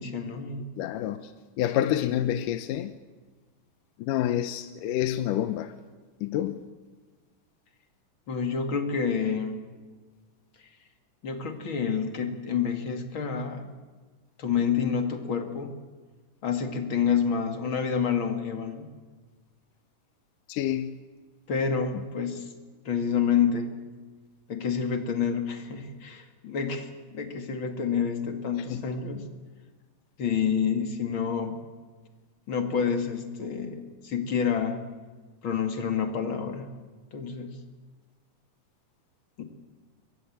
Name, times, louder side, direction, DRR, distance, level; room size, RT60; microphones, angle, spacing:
voice 1, 0.0-0.6 8.3-9.6 11.2-13.7 14.4-15.7 16.4-18.9 21.5-22.5 22.8-23.8 24.5-29.3 30.2-31.6 32.5-34.8 35.4-36.7 37.1-37.6 39.4-39.5, left 6 dB, 40° left, 2.7 m, -28 dB
voice 2, 0.8-1.3 1.6-2.9 4.0-5.7 6.2-6.6 20.5-21.0 21.9-22.0 28.6-28.8, left 11 dB, 80° left, 2.4 m, -28 dB
23.0 x 22.5 x 8.7 m
omnidirectional pair, 3.8 m